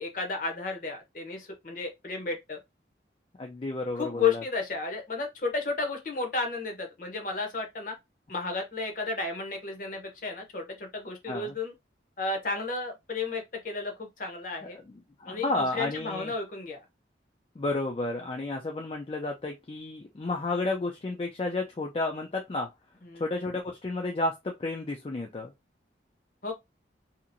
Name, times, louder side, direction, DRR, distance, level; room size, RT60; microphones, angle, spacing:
voice 1, 0.0-2.6 4.0-7.9 8.3-11.7 12.2-14.8 15.3-16.8 23.0-23.2 26.4-26.5, left 4 dB, 45° left, 0.8 m, -33 dB
voice 2, 3.4-4.4 11.3-11.5 14.6-16.3 17.6-22.7 23.2-25.5, left 2 dB, 30° left, 0.3 m, -32 dB
2.8 x 2.5 x 2.5 m
head